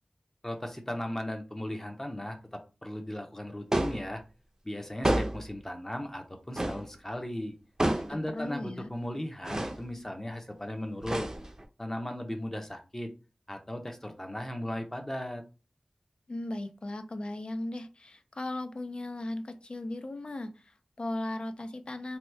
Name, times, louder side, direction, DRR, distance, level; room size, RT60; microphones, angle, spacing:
voice 1, 0.4-4.2 4.6-7.5 8.1-11.3 11.8-13.1 13.5-15.4, left 1 dB, 20° left, 4 dB, 0.7 m, -37 dB
sound 1, 3.7-4.1 5.0-5.5 6.6-6.9 7.8-8.2 9.5-9.8 11.0-11.6, right 1 dB, 30° right, 0.5 m, -29 dB
voice 2, 8.1-8.9 16.3-22.2, left 1 dB, 55° left, 8 dB, 0.4 m, -37 dB
2.9 x 2.2 x 3.3 m, 0.31 s
wide cardioid pair, 65°, 2 cm